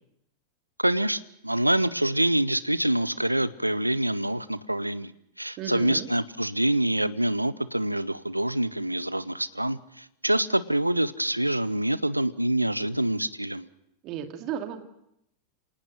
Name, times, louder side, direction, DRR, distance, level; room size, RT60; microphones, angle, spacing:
voice 1, 0.8-5.1 5.4-13.7, right 1 dB, 85° right, 17 dB, 0.7 m, -26 dB
voice 2, 5.6-6.1 14.0-14.8, right 9 dB, 40° right, 6 dB, 2.4 m, -34 dB
26.5 x 18.5 x 6.4 m, 0.78 s
figure-of-eight pair, 90°, 0 cm